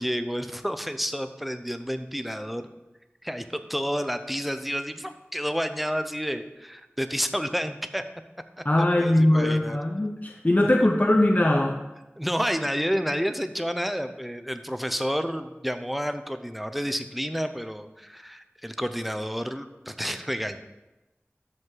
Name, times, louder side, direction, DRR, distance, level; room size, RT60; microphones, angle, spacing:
voice 1, 0.0-2.7 3.2-8.0 9.0-9.8 12.2-20.6, equal, ahead, 9 dB, 0.7 m, -30 dB
voice 2, 8.6-11.8, left 1 dB, 35° left, 1 dB, 0.7 m, -21 dB
13.0 x 5.5 x 3.9 m, 1.0 s
wide cardioid pair, 40°, 4 cm